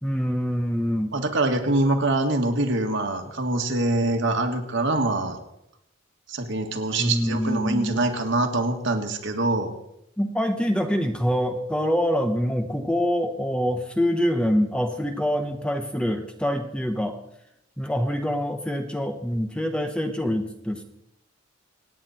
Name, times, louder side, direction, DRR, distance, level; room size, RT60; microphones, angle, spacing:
voice 1, 0.0-1.1 7.0-8.0 10.2-17.2 17.8-20.8, equal, 5° left, 6 dB, 0.9 m, -25 dB
voice 2, 1.1-5.4 6.3-9.7, right 2 dB, 60° right, 4 dB, 2.0 m, -24 dB
26.0 x 9.6 x 4.3 m, 0.81 s
head